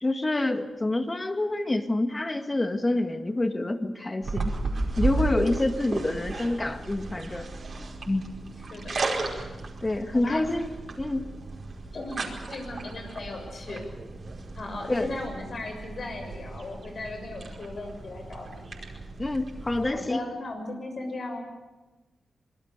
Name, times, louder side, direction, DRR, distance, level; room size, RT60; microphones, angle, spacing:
voice 1, 0.0-4.5 5.0-7.5 8.1-8.2 9.8-11.3 14.9-15.1 19.2-20.2, left 2 dB, 25° left, 7 dB, 1.9 m, -27 dB
sound 1, 4.2-19.9, right 3 dB, 50° right, 4.9 m, -35 dB
voice 2, 5.8-6.1 8.7-9.0 10.1-10.4 11.9-13.9 14.6-18.6 19.9-21.4, left 2 dB, 55° left, 4 dB, 6.8 m, -37 dB
25.0 x 21.0 x 6.8 m, 1.1 s
cardioid pair, 90°, 0 cm